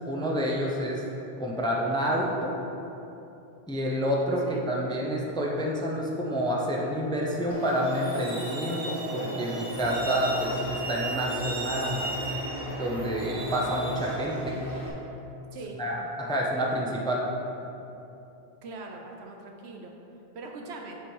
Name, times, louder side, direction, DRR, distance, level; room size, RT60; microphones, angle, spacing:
voice 1, 0.0-1.0 1.4-2.6 3.7-12.1 12.8-14.6 15.8-17.3, equal, 5° left, -2 dB, 0.4 m, -28 dB
Truck, 7.5-14.9, right 2 dB, 60° right, 1.1 m, -35 dB
sound 1, 9.7-14.9, left 2 dB, 50° left, 1.3 m, -41 dB
voice 2, 18.6-19.9 20.3-21.0, right 3 dB, 85° right, 1 dB, 1.0 m, -41 dB
7.2 x 3.0 x 5.3 m, 2.9 s
omnidirectional pair, 1.1 m